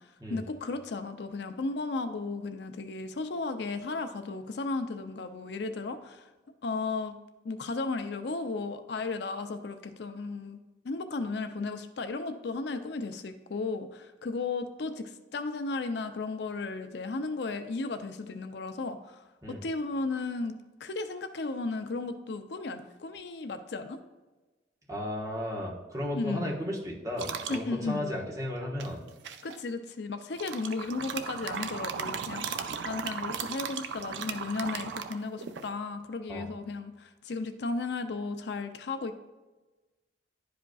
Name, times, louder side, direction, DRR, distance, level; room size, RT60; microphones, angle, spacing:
voice 1, 0.0-6.3 6.6-7.1 7.4-10.6 10.8-20.5 20.8-24.0 26.1-26.6 27.5-28.1 29.4-39.2, left 3 dB, 65° left, 8 dB, 0.5 m, -35 dB
voice 2, 24.9-29.0 36.3-36.5, left 1 dB, 20° right, -3 dB, 1.2 m, -34 dB
sound 1, 27.2-27.6 28.8-29.6 30.3-35.7, right 6 dB, 75° right, 0.5 m, -36 dB
11.0 x 5.0 x 2.3 m, 1.2 s
head